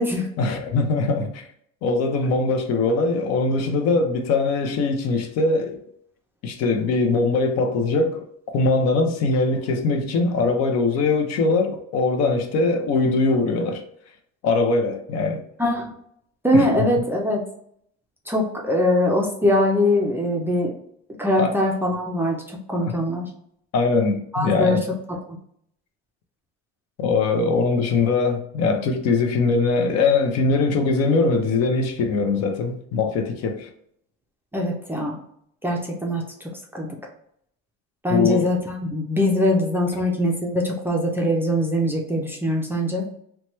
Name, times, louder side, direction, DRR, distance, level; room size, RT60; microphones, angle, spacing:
voice 1, 0.4-1.5 1.8-5.8 6.4-8.2 8.5-13.8 14.4-15.4 16.5-16.7 21.4-21.5 23.7-24.8 27.0-33.7 38.1-38.5, left 3 dB, 60° left, 0.6 m, -21 dB
voice 2, 15.6-15.9 16.4-17.4 18.3-20.7 21.2-23.3 24.3-25.4 34.5-35.2 35.6-36.9 38.0-43.1, left 1 dB, 10° right, 0.4 m, -22 dB
2.9 x 2.2 x 3.0 m
cardioid pair, 130°, 29 cm